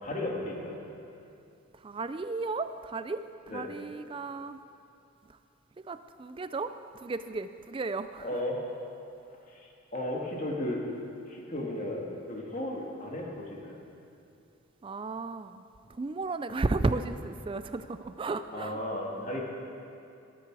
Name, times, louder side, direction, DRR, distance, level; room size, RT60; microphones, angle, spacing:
voice 1, 0.0-0.8 3.5-3.6 8.2-8.6 9.5-10.8 11.3-13.8 18.5-19.5, left 1 dB, 35° left, -2 dB, 2.1 m, -35 dB
voice 2, 1.8-4.6 5.9-8.3 14.8-15.6 15.9-18.8, right 3 dB, 25° right, 11 dB, 0.3 m, -34 dB
21.5 x 9.9 x 4.8 m, 2.7 s
head